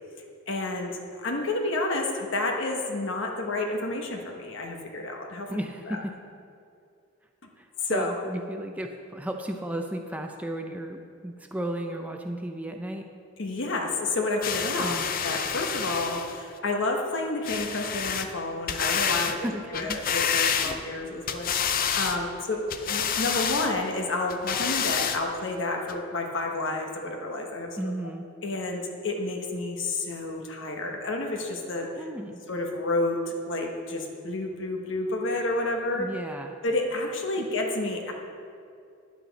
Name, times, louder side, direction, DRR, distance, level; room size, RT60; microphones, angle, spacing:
voice 1, 0.5-5.5 5.9-6.0 7.8-8.1 13.4-19.4 19.7-21.5 21.9-27.9 28.4-32.1 32.5-36.1 36.6-38.1, left 2 dB, 65° left, 2 dB, 1.1 m, -30 dB
voice 2, 5.5-6.1 7.6-13.1 14.8-15.1 19.3-20.0 20.6-20.8 27.8-28.3 32.0-32.4 35.9-36.6, right 1 dB, 5° right, 3 dB, 0.5 m, -34 dB
sound 1, 14.4-16.4 17.4-18.3 18.7-19.4 19.7-21.0 21.3-22.2 22.7-23.7 24.3-25.2 25.9-26.0, left 7 dB, 45° left, 0.5 m, -28 dB
10.5 x 8.4 x 4.0 m, 2.4 s
head